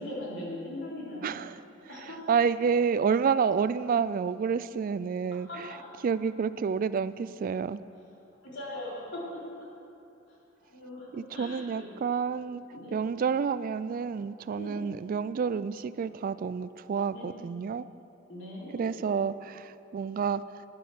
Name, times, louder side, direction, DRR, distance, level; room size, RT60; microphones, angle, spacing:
voice 1, 0.0-1.4 1.9-2.4 5.5-5.8 8.5-9.4 10.3-10.4 10.7-11.9 12.7-13.0 14.6-14.8 17.1-17.3 18.3-18.9, left 1 dB, 65° left, -5 dB, 3.7 m, -40 dB
voice 2, 1.2-1.6 1.9-5.8 6.0-7.8 11.1-12.6 12.9-17.9 18.7-20.6, right 6 dB, 45° right, 15 dB, 0.3 m, -29 dB
12.0 x 10.5 x 6.2 m, 2.7 s
head